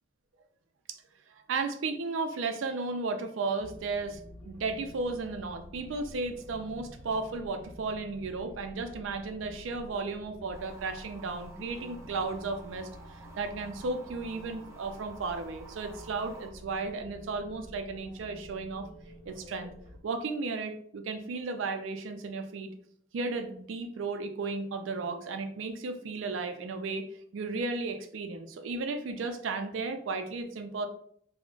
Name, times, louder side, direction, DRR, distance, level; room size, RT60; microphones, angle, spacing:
voice 1, 1.3-4.2 4.4-18.9 19.3-19.7 20.0-22.7 23.1-30.9, right 3 dB, 80° right, 7 dB, 0.4 m, -34 dB
sound 1, 3.6-20.0, equal, 40° left, 0.5 m, -50 dB
sound 2, 10.5-16.5, right 4 dB, 15° right, 0.5 m, -51 dB
2.3 x 2.1 x 3.7 m, 0.64 s
head